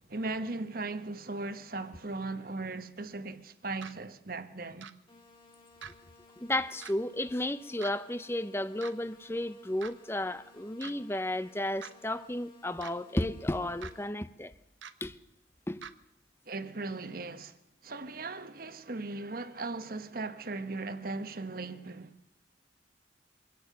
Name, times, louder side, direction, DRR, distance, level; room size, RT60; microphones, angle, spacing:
voice 1, 0.0-4.9 16.5-17.6 17.8-22.1, right 3 dB, 50° right, 1.2 m, -38 dB
sound 1, 3.8-3.9 4.8-4.9 5.8-5.9 6.8-6.9 7.8-7.9 8.8-8.9 9.8-9.9 10.8-10.9 11.8-11.9 12.8-12.9 13.8-13.9 14.8-14.9 15.8-15.9, right 7 dB, 90° right, 0.9 m, -44 dB
sound 2, 5.1-14.1, left 3 dB, 30° left, 3.4 m, -59 dB
voice 2, 6.4-14.5 15.0-15.1 15.7-15.8, left 1 dB, 15° left, 0.7 m, -33 dB
23.5 x 17.5 x 6.7 m
head